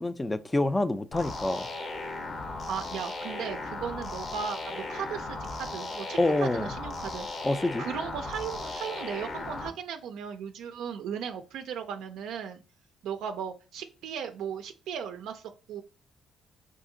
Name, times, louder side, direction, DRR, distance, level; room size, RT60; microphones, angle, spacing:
voice 1, 0.0-1.7 6.2-6.7 7.4-7.9, left 2 dB, 15° left, 0.3 m, -27 dB
sound 1, 1.1-9.7, left 2 dB, 45° left, 0.7 m, -37 dB
voice 2, 2.7-7.3 7.8-12.6 13.0-15.8, right 7 dB, 85° right, 0.3 m, -36 dB
2.7 x 2.5 x 3.7 m
cardioid pair, 90°, 0 cm